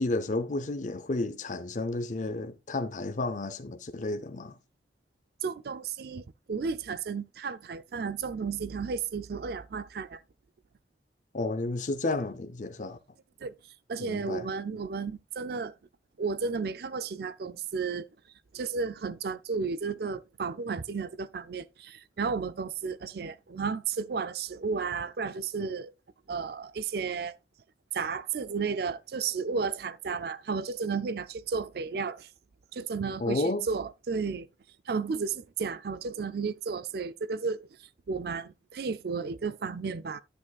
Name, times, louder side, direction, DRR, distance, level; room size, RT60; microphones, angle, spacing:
voice 1, 0.0-4.6 11.3-13.0 14.0-14.5 33.2-33.7, left 2 dB, 45° left, 0.6 m, -31 dB
voice 2, 5.4-10.2 13.4-13.5 13.9-15.7 16.2-18.1 18.5-25.9 26.3-27.3 27.9-32.3 32.7-34.5 34.9-37.7 38.1-40.2, right 5 dB, 55° right, 0.4 m, -33 dB
9.9 x 8.3 x 2.3 m
head